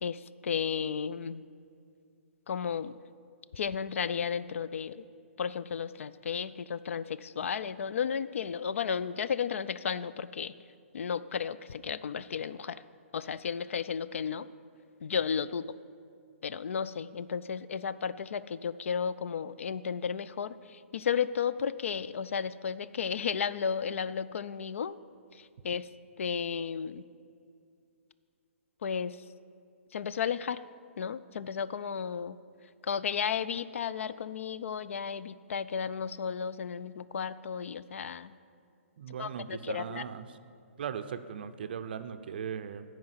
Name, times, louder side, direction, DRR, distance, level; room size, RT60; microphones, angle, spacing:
voice 1, 0.0-1.4 2.5-2.9 3.5-5.0 5.4-10.5 10.9-12.8 13.1-14.5 15.0-15.7 16.4-25.0 25.3-25.9 26.2-27.0 28.8-29.2 29.9-30.6 31.0-32.4 32.8-38.4 39.2-40.0, left 7 dB, 70° left, 15 dB, 0.3 m, -33 dB
voice 2, 39.0-40.3 40.8-42.8, right 7 dB, 45° right, 10 dB, 0.4 m, -38 dB
9.6 x 4.8 x 7.9 m, 2.4 s
hypercardioid pair, 170°, 7 cm